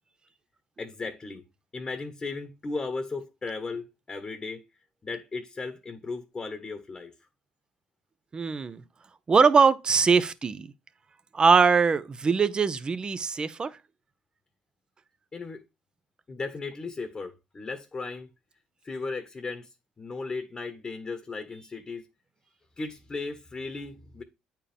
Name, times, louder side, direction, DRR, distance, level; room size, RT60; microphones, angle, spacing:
voice 1, 0.8-1.4 1.7-4.6 5.0-7.1 15.3-15.6 16.3-18.3 18.8-22.1 22.8-24.2, left 3 dB, 30° left, 1.2 m, -36 dB
voice 2, 8.3-8.8 9.3-10.7 11.3-13.8, right 5 dB, 35° right, 0.7 m, -22 dB
8.8 x 4.5 x 3.5 m
supercardioid pair, 75°, 3 cm